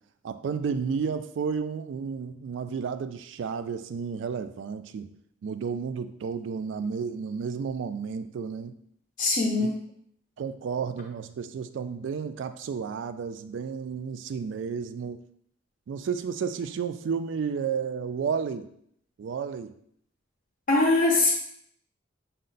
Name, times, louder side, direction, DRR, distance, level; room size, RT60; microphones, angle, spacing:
voice 1, 0.2-5.1 5.4-8.8 9.6-9.7 10.4-15.2 15.9-18.7 19.2-19.7, right 6 dB, 65° right, 11 dB, 0.3 m, -32 dB
voice 2, 9.2-9.8 20.7-21.3, left 2 dB, 45° left, -2 dB, 0.5 m, -22 dB
5.3 x 2.1 x 3.9 m, 0.67 s
head